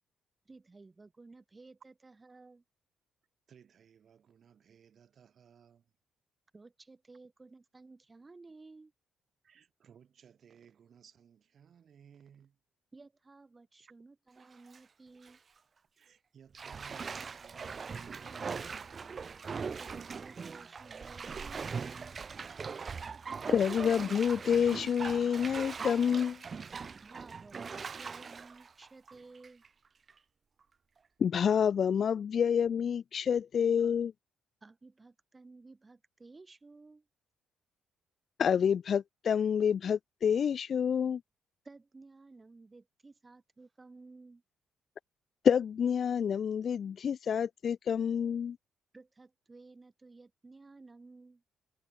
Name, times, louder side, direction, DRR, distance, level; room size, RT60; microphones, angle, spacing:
voice 1, 0.4-2.6 6.5-8.9 12.9-15.4 19.6-22.2 27.0-29.6 34.6-37.1 41.6-44.4 48.9-51.4, right 3 dB, 25° right, 4.8 m, -55 dB
voice 2, 3.5-5.9 9.4-12.6 16.0-18.8, right 8 dB, 55° right, 7.1 m, -60 dB
Bathtub (filling or washing), 14.4-14.8 15.2-15.4 16.5-29.7 30.1-30.2, right 5 dB, 40° right, 1.5 m, -41 dB
voice 3, 23.5-26.4 31.2-34.1 38.4-41.2 45.4-48.6, left 7 dB, 55° left, 0.3 m, -28 dB
cardioid pair, 90°, 0 cm